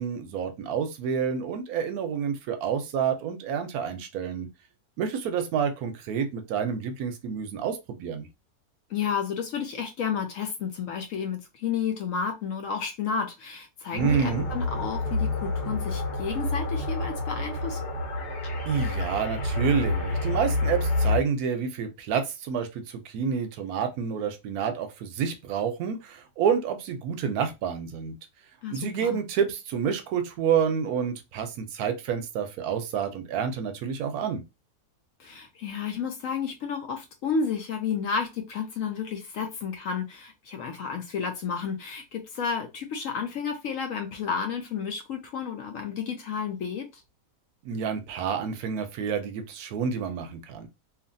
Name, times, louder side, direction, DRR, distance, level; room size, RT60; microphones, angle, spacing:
voice 1, 0.0-4.5 5.0-8.3 13.9-14.5 18.7-28.1 28.7-34.4 47.6-50.7, right 7 dB, 75° right, 1.0 m, -29 dB
voice 2, 8.9-17.8 28.6-29.2 35.2-47.0, left 6 dB, 70° left, 0.8 m, -31 dB
sound 1, 14.0-21.2, left 2 dB, 85° left, 1.6 m, -28 dB
2.9 x 2.5 x 2.5 m
omnidirectional pair, 1.7 m